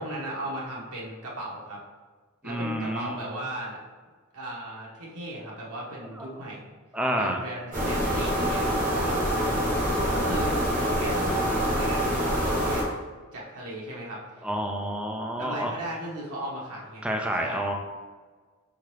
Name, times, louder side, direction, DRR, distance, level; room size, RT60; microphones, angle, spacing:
voice 1, 0.0-1.8 2.4-3.8 4.3-6.7 7.2-12.9 13.3-14.5 15.4-17.1 17.4-17.7, right 1 dB, 90° right, -4 dB, 1.2 m, -36 dB
voice 2, 2.4-3.3 6.2-6.3 6.9-7.4 14.4-15.7 17.0-17.7, equal, 5° right, 2 dB, 0.4 m, -29 dB
sound 1, 7.7-12.8, equal, 35° right, 1.2 m, -25 dB
4.3 x 3.8 x 3.2 m, 1.4 s
head